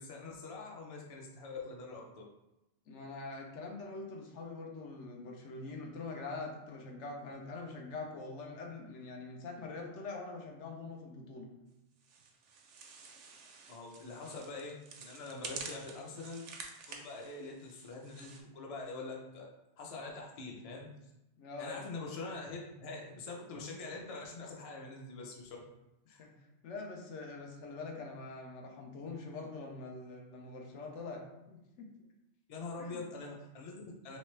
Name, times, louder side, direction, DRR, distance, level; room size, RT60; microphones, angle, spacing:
voice 1, 0.0-2.2 13.7-16.4 16.9-19.5 19.8-20.9 21.6-25.6 26.1-26.3 32.5-34.2, left 3 dB, 40° left, 0 dB, 0.5 m, -44 dB
voice 2, 2.9-11.5 21.4-21.9 26.2-26.3 26.6-31.9 32.8-33.0, left 3 dB, 90° left, 1 dB, 1.0 m, -44 dB
sound 1, 12.0-18.4, right 4 dB, 85° right, 0.9 m, -49 dB
3.2 x 3.2 x 3.2 m, 0.93 s
omnidirectional pair, 1.2 m